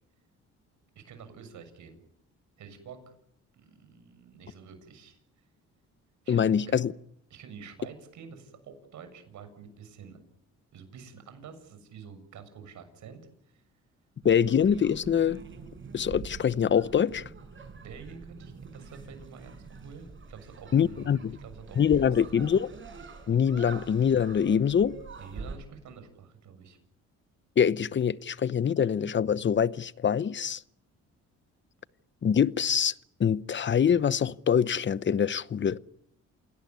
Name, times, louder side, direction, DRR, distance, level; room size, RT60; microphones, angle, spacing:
voice 1, 1.0-2.0 2.6-3.1 3.5-5.2 6.2-6.8 7.3-10.2 10.7-13.6 17.7-22.6 25.2-26.8, right 6 dB, 70° right, 7.0 m, -48 dB
voice 2, 6.3-6.9 14.2-15.4 15.9-17.3 20.7-21.4 21.8-22.7 23.3-25.0 27.6-30.6 32.2-32.9 33.2-35.8, left 8 dB, 40° left, 0.9 m, -24 dB
sound 1, 14.2-25.6, right 4 dB, 40° right, 5.4 m, -45 dB
28.5 x 18.0 x 9.5 m
cardioid pair, 90°, 30 cm